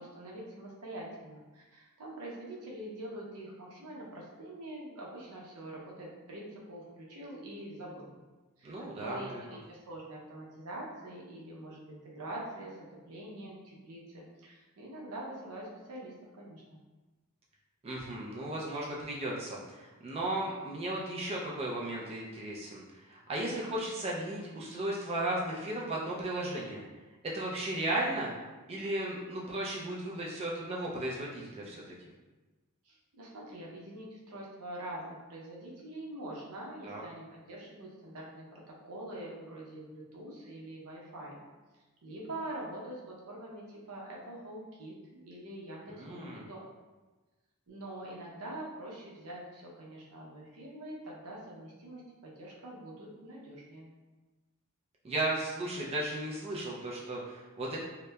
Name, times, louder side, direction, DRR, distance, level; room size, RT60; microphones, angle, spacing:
voice 1, 0.0-8.1 8.6-16.8 32.8-41.4 42.0-46.7 47.7-53.9, right 1 dB, 85° right, -3 dB, 0.6 m, -44 dB
voice 2, 8.6-9.4 17.8-26.8 27.2-28.3 28.7-31.9 36.8-37.0 45.9-46.5 55.0-57.8, right 1 dB, 25° right, -4 dB, 0.3 m, -35 dB
2.8 x 2.1 x 2.2 m, 1.2 s
head